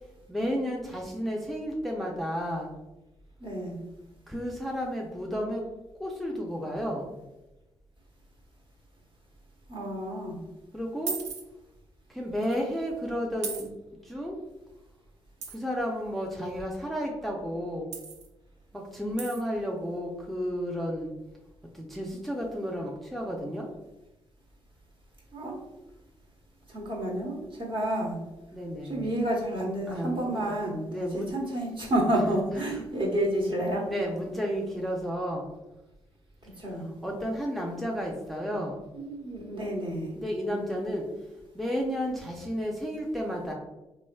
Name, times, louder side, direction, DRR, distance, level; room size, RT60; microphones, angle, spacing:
voice 1, 0.3-2.8 4.3-5.6 6.0-7.1 10.7-11.2 12.1-13.7 14.0-14.4 15.5-17.9 18.7-21.1 21.7-23.7 28.5-29.1 29.9-30.4 30.9-31.3 32.1-32.2 32.5-32.8 33.9-35.5 36.7-38.8 40.2-41.0 41.5-43.5, equal, ahead, -1 dB, 0.5 m, -32 dB
voice 2, 3.4-3.8 9.7-10.4 25.3-25.6 26.7-28.2 28.8-33.9 36.6-36.9 38.9-40.1, right 1 dB, 45° right, -2 dB, 1.1 m, -30 dB
sound 1, 11.1-11.4 12.4-12.5 13.4-13.7 15.4-15.6 17.9-18.3 19.2-19.4, right 6 dB, 65° right, 0.4 m, -35 dB
3.0 x 2.6 x 2.2 m, 1.0 s
hypercardioid pair, 50°, 12 cm